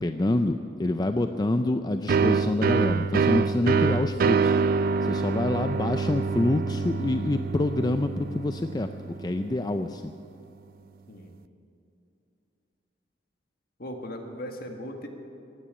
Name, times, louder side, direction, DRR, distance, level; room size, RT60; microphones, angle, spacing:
voice 1, 0.0-4.6 5.0-10.1, left 2 dB, 20° left, 8 dB, 0.4 m, -27 dB
sound 1, 2.1-9.6, right 5 dB, 50° right, 0.3 m, -26 dB
voice 2, 13.8-15.1, equal, 55° left, 3 dB, 1.7 m, -38 dB
16.0 x 9.9 x 8.8 m, 2.8 s
head